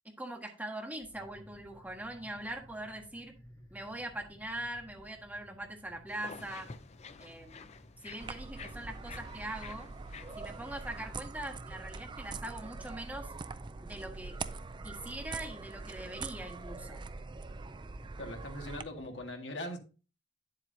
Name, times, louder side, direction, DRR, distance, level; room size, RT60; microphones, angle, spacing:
voice 1, 0.0-3.4 3.7-6.7 7.2-7.7 8.0-9.9 10.4-13.3 13.8-14.4 14.8-17.0, right 1 dB, 10° right, 1.5 m, -42 dB
sound 1, 0.9-19.3, equal, 20° left, 3.6 m, -57 dB
sound 2, 6.1-11.2, left 5 dB, 35° left, 0.5 m, -51 dB
sound 3, 8.2-18.8, right 4 dB, 25° right, 0.4 m, -43 dB
voice 2, 18.2-19.8, left 1 dB, 70° left, 1.7 m, -40 dB
9.4 x 7.5 x 2.7 m
head